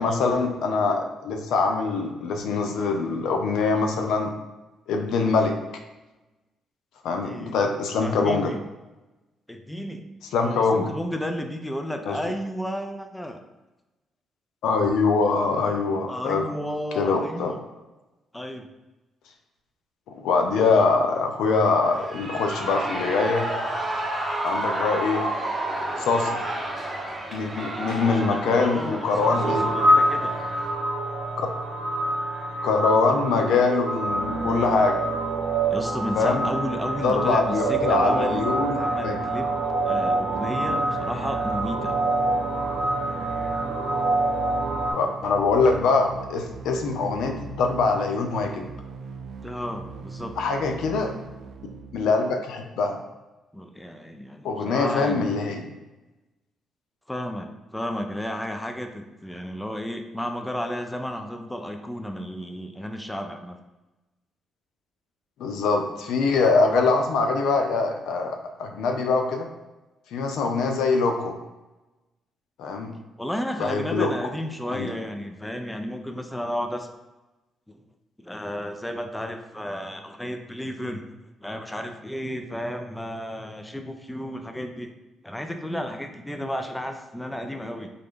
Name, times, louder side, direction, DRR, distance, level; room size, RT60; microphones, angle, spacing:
voice 1, 0.0-4.3 4.9-5.6 7.0-8.5 10.3-10.9 12.1-12.2 14.6-16.5 17.0-17.6 20.2-23.5 24.4-25.2 26.0-26.4 27.3-29.7 31.4-31.5 32.6-35.0 36.2-36.5 37.0-39.1 44.9-48.7 50.4-51.1 51.9-53.0 54.4-55.7 65.4-69.5 70.1-71.4 72.6-72.9 73.6-74.1 74.7-74.9, left 4 dB, 80° left, 4 dB, 0.6 m, -23 dB
voice 2, 7.2-7.6 8.0-8.6 9.5-10.0 10.4-13.4 16.1-17.6 18.3-18.7 26.1-26.3 27.7-30.4 35.7-38.4 38.8-42.0 49.4-50.4 53.5-55.4 57.1-63.6 73.2-76.9 77.7-77.8 78.2-81.0 81.4-84.9 85.2-87.9, equal, 10° left, 5 dB, 0.5 m, -33 dB
Shout / Cheering, 21.8-30.7, right 1 dB, 10° right, 1.0 m, -31 dB
sound 1, 29.1-44.9, right 2 dB, 85° right, 0.8 m, -26 dB
sound 2, 40.3-52.3, right 5 dB, 60° right, 0.4 m, -40 dB
3.9 x 3.3 x 3.7 m, 1.1 s
cardioid pair, 90°, 0 cm